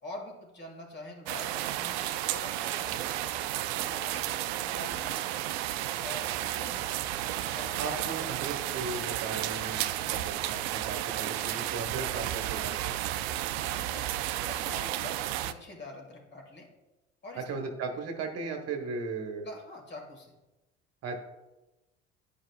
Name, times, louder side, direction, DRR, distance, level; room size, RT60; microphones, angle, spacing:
voice 1, 0.0-3.1 3.9-5.4 6.0-8.0 10.0-10.3 13.5-16.7 17.2-17.4 19.4-20.3, left 1 dB, 30° left, 1 dB, 2.3 m, -46 dB
sound 1, 1.3-15.5, right 13 dB, 65° right, 0.5 m, -32 dB
voice 2, 7.8-13.0 17.3-19.5 21.0-21.2, right 4 dB, 45° right, 4 dB, 1.2 m, -37 dB
11.0 x 5.1 x 2.4 m, 1.0 s
hypercardioid pair, 65°, 33 cm